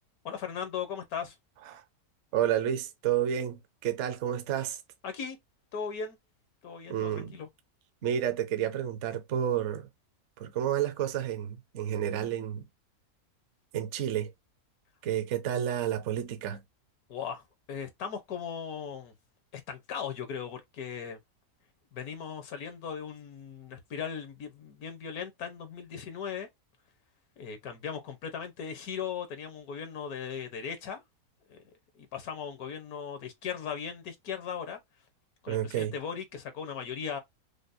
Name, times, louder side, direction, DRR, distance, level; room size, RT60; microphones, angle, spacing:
voice 1, 0.2-1.3 5.0-5.4 5.7-6.2 6.6-7.5 17.1-17.4 17.7-19.1 19.5-21.2 21.9-26.5 27.4-31.0 31.5-31.6 32.0-34.8 35.4-37.2, left 7 dB, 80° left, 1.4 m, -38 dB
voice 2, 2.3-4.8 6.9-7.4 8.0-9.9 10.4-12.6 13.7-14.3 15.0-16.6 35.5-35.9, right 10 dB, 60° right, 0.9 m, -30 dB
5.1 x 2.0 x 2.6 m
omnidirectional pair, 1.5 m